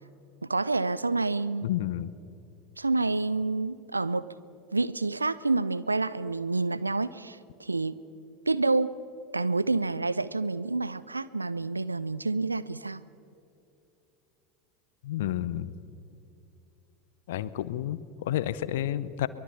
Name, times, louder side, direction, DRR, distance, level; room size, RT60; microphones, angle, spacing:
voice 1, 0.5-1.7 2.8-4.3 4.7-8.0 8.5-8.9 9.3-13.0, right 3 dB, 85° right, 18 dB, 0.6 m, -28 dB
voice 2, 1.6-2.1 15.0-15.8 17.3-19.3, left 12 dB, 65° left, 16 dB, 0.8 m, -30 dB
23.5 x 22.0 x 5.7 m, 2.7 s
figure-of-eight pair, 80°, 0 cm